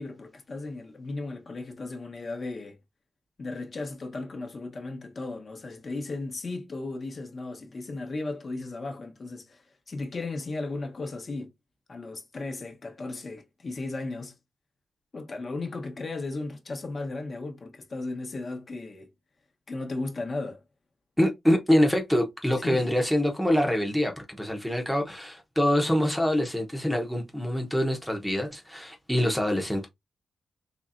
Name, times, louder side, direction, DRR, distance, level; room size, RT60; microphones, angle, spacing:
voice 1, 0.0-2.8 3.4-11.5 11.9-14.3 15.1-19.1 19.7-20.6 22.6-22.9, left 3 dB, 40° left, 1.0 m, -35 dB
voice 2, 21.2-29.9, equal, ahead, 0.8 m, -25 dB
4.1 x 3.2 x 2.5 m
wide cardioid pair, 120°, 0 cm